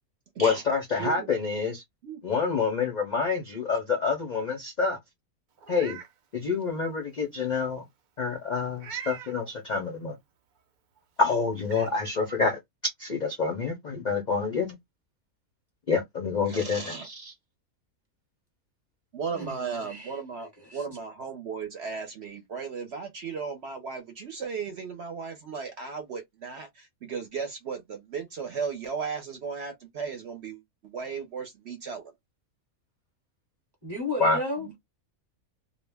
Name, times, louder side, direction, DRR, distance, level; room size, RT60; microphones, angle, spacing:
voice 1, 0.4-1.8 2.2-5.0 5.7-6.0 6.3-7.8 8.2-10.2 11.2-12.6 13.0-14.7 15.9-17.3 34.2-34.4, left 4 dB, 50° left, 0.5 m, -27 dB
voice 2, 1.0-1.3 2.0-2.2 16.5-17.1 19.1-32.1 34.6-34.7, right 5 dB, 60° right, 0.8 m, -36 dB
Meow, 5.6-6.1 6.6-6.7 8.8-9.4 11.0-11.1 11.6-11.9, right 9 dB, 80° right, 0.4 m, -41 dB
voice 3, 33.8-34.8, left 1 dB, 20° right, 0.9 m, -32 dB
2.4 x 2.0 x 3.3 m
omnidirectional pair, 1.5 m